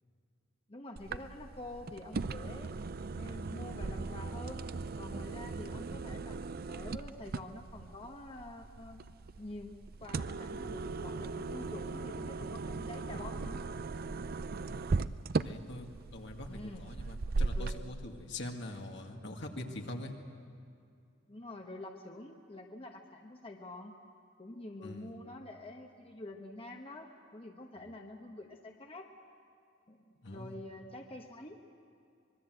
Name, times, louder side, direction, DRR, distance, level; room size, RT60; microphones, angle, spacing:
voice 1, 0.7-2.7 3.1-4.7 5.0-6.4 6.7-9.0 9.4-13.6 16.5-16.9 17.5-17.8 21.3-23.9 24.4-29.1 29.9-31.6, left 2 dB, 30° left, 3 dB, 1.2 m, -47 dB
sound 1, 1.0-17.8, right 3 dB, 50° right, 0.5 m, -38 dB
voice 2, 14.4-15.0 15.4-20.1 24.8-25.1 30.2-30.6, left 1 dB, 65° left, 3 dB, 2.1 m, -44 dB
25.0 x 21.5 x 7.9 m, 2.4 s
head